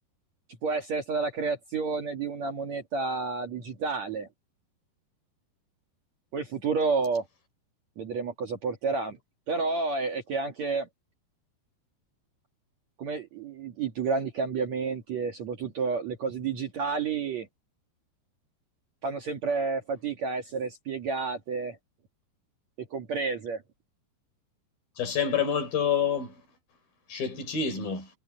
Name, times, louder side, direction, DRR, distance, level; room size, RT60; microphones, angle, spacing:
voice 1, 0.6-4.3 6.3-7.2 8.0-9.2 9.5-10.9 13.0-17.5 19.0-21.8 22.8-23.6, right 4 dB, 50° right, 2.5 m, -30 dB
voice 2, 25.0-26.3 27.1-28.1, left 7 dB, 60° left, 6.1 m, -27 dB
omnidirectional pair, 4.9 m